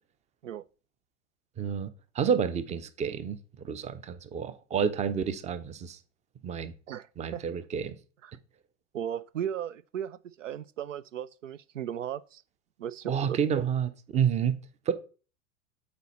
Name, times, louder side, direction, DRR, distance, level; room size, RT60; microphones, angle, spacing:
voice 1, 1.6-6.0 6.4-6.7 7.2-7.9 13.1-14.9, right 7 dB, 20° right, 0.6 m, -30 dB
voice 2, 8.9-12.4 12.8-13.6, right 9 dB, 80° right, 0.5 m, -36 dB
8.2 x 4.3 x 4.1 m
figure-of-eight pair, 95°, 38 cm